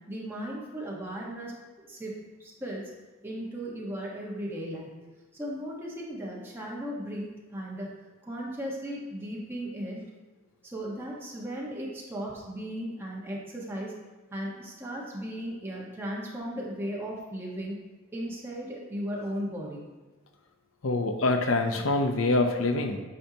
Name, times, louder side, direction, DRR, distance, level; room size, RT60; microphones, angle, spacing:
voice 1, 0.1-2.1 2.4-2.9 3.2-4.9 5.3-7.9 8.2-10.0 10.6-13.9 14.3-17.8 18.1-19.8, equal, 10° right, -4 dB, 1.2 m, -36 dB
voice 2, 20.8-23.0, left 2 dB, 75° left, 5 dB, 0.7 m, -25 dB
8.8 x 5.5 x 2.8 m, 1.2 s
head